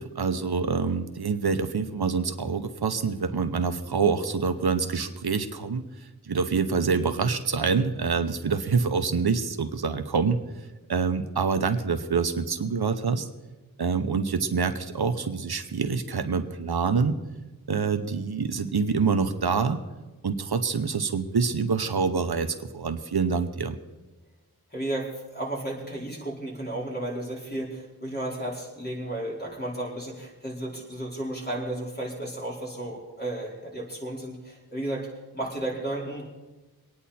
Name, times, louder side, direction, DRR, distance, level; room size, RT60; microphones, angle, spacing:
voice 1, 0.0-5.8 6.3-10.4 10.9-13.3 13.8-17.2 17.7-19.8 20.2-23.8, right 5 dB, 80° right, 9 dB, 0.9 m, -26 dB
voice 2, 24.7-35.1 35.3-36.3, right 1 dB, 25° left, -4 dB, 4.7 m, -33 dB
23.0 x 9.6 x 4.3 m, 1.1 s
wide cardioid pair, 50°, 38 cm